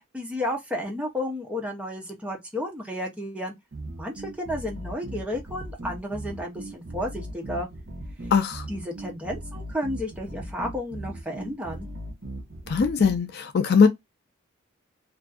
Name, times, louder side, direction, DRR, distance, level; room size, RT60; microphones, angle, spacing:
voice 1, 0.0-3.5 3.9-7.7 8.7-11.9, left 1 dB, 5° right, 0.6 m, -32 dB
sound 1, 3.7-13.2, right 1 dB, 60° right, 0.7 m, -38 dB
voice 2, 8.3-8.7 12.7-13.9, left 5 dB, 50° left, 0.4 m, -20 dB
2.5 x 2.4 x 2.4 m
head